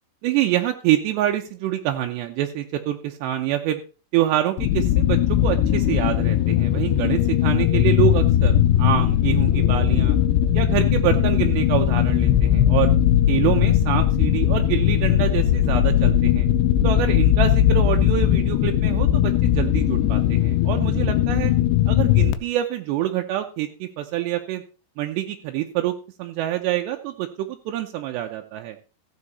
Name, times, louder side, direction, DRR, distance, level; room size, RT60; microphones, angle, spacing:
voice 1, 0.2-3.8 4.1-10.2 10.5-12.9 13.3-16.5 16.8-21.5 21.9-24.6 25.0-28.8, right 13 dB, 80° right, 4 dB, 2.9 m, -26 dB
sound 1, 4.6-22.3, left 11 dB, 90° left, 3.0 m, -19 dB
14.5 x 7.8 x 4.1 m, 0.36 s
omnidirectional pair, 5.0 m